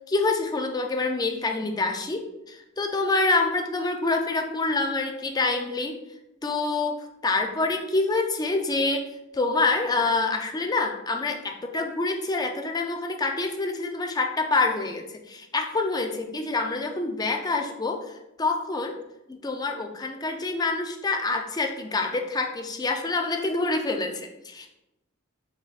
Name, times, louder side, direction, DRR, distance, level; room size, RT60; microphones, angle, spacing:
voice 1, 0.0-6.0 6.4-9.0 9.3-18.0 18.4-18.9 19.3-24.7, left 3 dB, 20° left, 4 dB, 0.4 m, -26 dB
4.8 x 3.8 x 2.4 m, 0.90 s
head